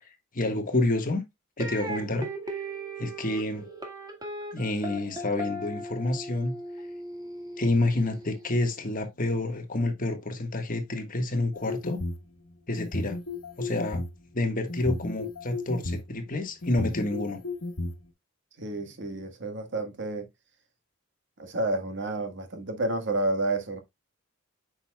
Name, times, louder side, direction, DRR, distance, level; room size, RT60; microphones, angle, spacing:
voice 1, 0.3-1.2 1.6-2.6 3.0-3.7 4.5-6.5 7.6-12.0 12.7-13.2 13.6-14.0 14.3-17.4, left 2 dB, 40° left, 1.4 m, -28 dB
sound 1, 1.6-8.7, right 1 dB, 20° right, 1.6 m, -38 dB
sound 2, 11.5-12.2 12.8-14.2 14.7-16.0 16.6-17.9, left 2 dB, 85° left, 1.3 m, -33 dB
voice 2, 18.6-20.3 21.4-23.8, right 2 dB, 60° right, 1.4 m, -30 dB
8.0 x 5.9 x 2.2 m
head